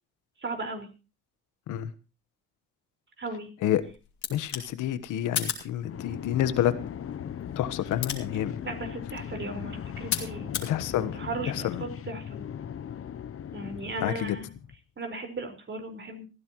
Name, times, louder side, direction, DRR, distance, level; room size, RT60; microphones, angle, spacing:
voice 1, 0.4-0.9 3.2-3.5 8.6-12.4 13.5-14.5 15.0-16.2, right 2 dB, 40° right, 4 dB, 4.9 m, -37 dB
sound 1, 3.6-10.7, left 8 dB, 70° left, 2.9 m, -38 dB
voice 2, 4.3-6.7 7.6-8.6 10.6-11.2 11.5-11.8 14.0-14.4, left 11 dB, 90° left, 13 dB, 1.3 m, -28 dB
sound 2, 5.8-14.8, left 9 dB, 45° left, 0.8 m, -38 dB
20.5 x 14.5 x 3.1 m, 0.32 s
cardioid pair, 90°, 30 cm